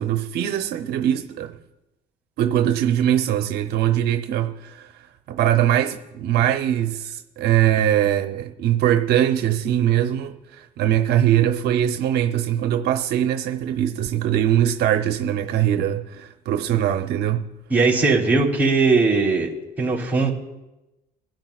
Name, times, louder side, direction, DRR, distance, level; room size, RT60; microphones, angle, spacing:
voice 1, 0.0-1.6 2.4-17.5, right 11 dB, 75° right, 0.7 m, -21 dB
voice 2, 17.7-19.5 19.8-20.3, right 3 dB, 10° right, 3.6 m, -19 dB
22.5 x 12.0 x 2.4 m
cardioid pair, 110°, 17 cm